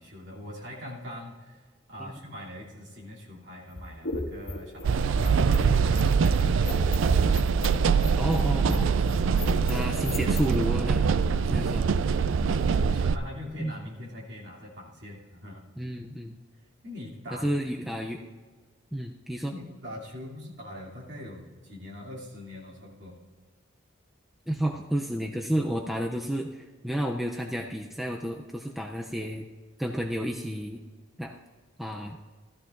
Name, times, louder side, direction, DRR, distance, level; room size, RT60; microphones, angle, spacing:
voice 1, 0.0-6.9 11.3-11.8 12.1-12.2 12.5-15.7 16.8-17.5 17.9-18.0 19.5-23.2, left 1 dB, 60° right, -4 dB, 3.0 m, -42 dB
sound 1, 3.7-10.6, left 1 dB, 60° left, 1.7 m, -35 dB
sound 2, 4.8-13.2, right 5 dB, 80° right, 0.4 m, -24 dB
voice 2, 8.2-8.9 9.6-11.1 11.5-11.9 13.6-13.7 15.8-16.4 17.3-18.2 18.9-19.5 24.5-29.5 29.8-30.8 31.2-31.4 31.8-32.2, equal, ahead, 1 dB, 0.5 m, -31 dB
16.0 x 13.5 x 2.6 m, 1.4 s
head